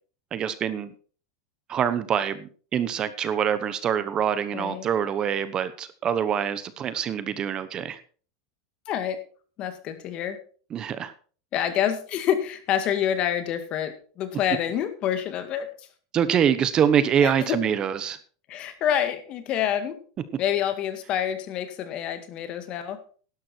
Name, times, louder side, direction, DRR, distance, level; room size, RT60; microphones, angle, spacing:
voice 1, 0.3-0.9 1.7-8.0 10.7-11.1 16.1-18.2, right 8 dB, 30° right, 14 dB, 1.0 m, -25 dB
voice 2, 4.5-4.9 8.9-9.2 9.6-10.4 11.5-15.9 17.2-17.6 18.5-20.0 20.4-23.0, left 10 dB, 45° left, 9 dB, 2.1 m, -27 dB
12.0 x 11.0 x 4.5 m, 0.41 s
supercardioid pair, 125°, 3 cm